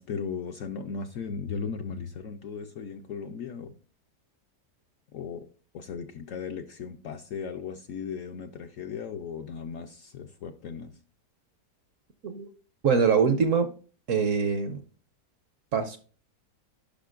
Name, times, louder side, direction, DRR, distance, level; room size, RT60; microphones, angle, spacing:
voice 1, 0.0-3.7 5.1-5.5 5.7-11.0, left 6 dB, 70° left, 0.8 m, -37 dB
voice 2, 12.8-13.7 14.1-14.8 15.7-16.0, right 6 dB, 65° right, 0.8 m, -23 dB
10.0 x 5.5 x 2.4 m
omnidirectional pair, 1.8 m